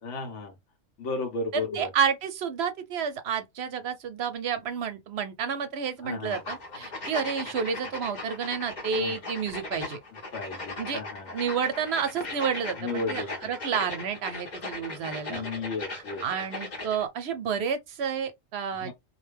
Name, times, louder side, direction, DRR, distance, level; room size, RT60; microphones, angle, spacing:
voice 1, 0.0-0.6 1.0-1.9 6.0-6.4 9.0-9.1 10.3-11.3 12.8-13.5 15.3-16.2 18.8-18.9, left 3 dB, 75° left, 1.0 m, -34 dB
voice 2, 1.5-10.0 10.8-11.0 11.3-15.5 16.2-18.9, right 7 dB, 65° right, 0.8 m, -30 dB
sound 1, 6.3-17.1, left 2 dB, 40° left, 0.8 m, -38 dB
2.5 x 2.2 x 3.3 m
omnidirectional pair, 1.3 m